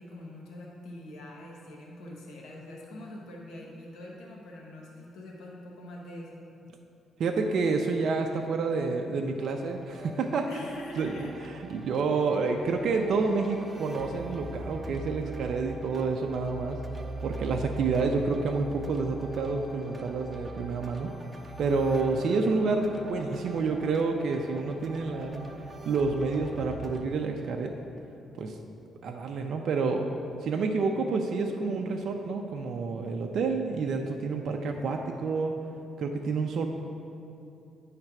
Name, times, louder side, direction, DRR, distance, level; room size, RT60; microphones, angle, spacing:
voice 1, 0.0-6.4 10.5-11.4, left 1 dB, 85° left, -3 dB, 1.0 m, -44 dB
voice 2, 7.2-10.5 11.0-11.3 11.7-16.8 17.2-21.1 21.6-25.5 25.8-27.7 28.4-28.6 29.0-30.1 30.4-35.5 36.0-36.7, right 4 dB, 65° right, 2 dB, 0.5 m, -29 dB
sound 1, 9.4-27.0, right 2 dB, 20° right, 0.6 m, -42 dB
8.8 x 3.3 x 5.9 m, 2.7 s
cardioid pair, 90°, 0 cm